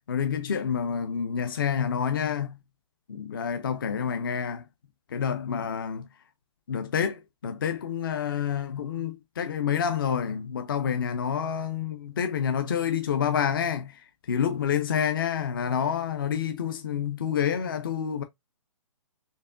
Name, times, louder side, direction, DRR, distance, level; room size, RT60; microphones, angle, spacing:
voice 1, 0.1-2.6 3.1-4.6 5.1-6.1 6.7-18.2, left 8 dB, 40° left, 0.5 m, -28 dB
4.6 x 2.8 x 2.4 m
hypercardioid pair, 175°, 17 cm